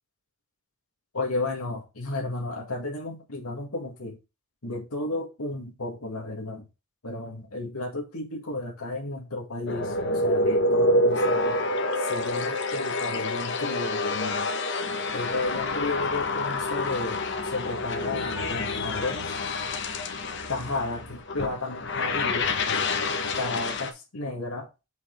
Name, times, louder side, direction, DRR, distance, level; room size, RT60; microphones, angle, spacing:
voice 1, 1.1-4.2 4.6-6.6 7.0-11.5 12.0-14.5 15.1-19.3 20.5-22.5 23.4-24.7, left 2 dB, 80° left, 1.7 m, -33 dB
sound 1, 9.7-23.9, left 2 dB, 50° left, 0.8 m, -27 dB
sound 2, 16.0-21.2, right 2 dB, 35° right, 2.3 m, -49 dB
5.3 x 5.2 x 3.7 m
head